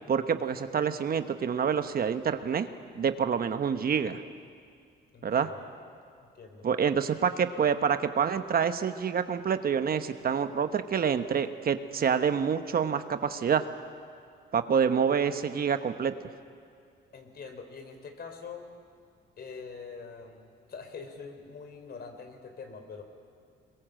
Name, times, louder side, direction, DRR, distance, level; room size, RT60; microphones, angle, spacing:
voice 1, 0.1-2.7 3.0-4.2 5.2-5.5 6.6-13.6 14.5-16.1, right 7 dB, 50° right, 9 dB, 1.1 m, -27 dB
voice 2, 5.1-5.7 6.3-6.7 17.1-18.6 19.4-23.0, left 5 dB, 55° left, 6 dB, 3.7 m, -44 dB
22.0 x 22.0 x 7.7 m, 2.3 s
cardioid pair, 90°, 20 cm